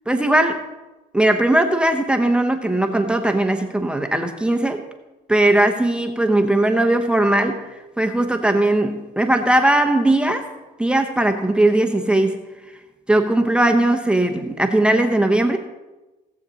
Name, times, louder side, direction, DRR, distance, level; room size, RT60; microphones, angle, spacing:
voice 1, 0.1-0.6 1.1-4.8 5.3-10.5 10.8-12.4 13.1-15.6, right 1 dB, 5° right, 4 dB, 0.9 m, -19 dB
17.5 x 7.1 x 4.1 m, 1.1 s
cardioid pair, 110°, 17 cm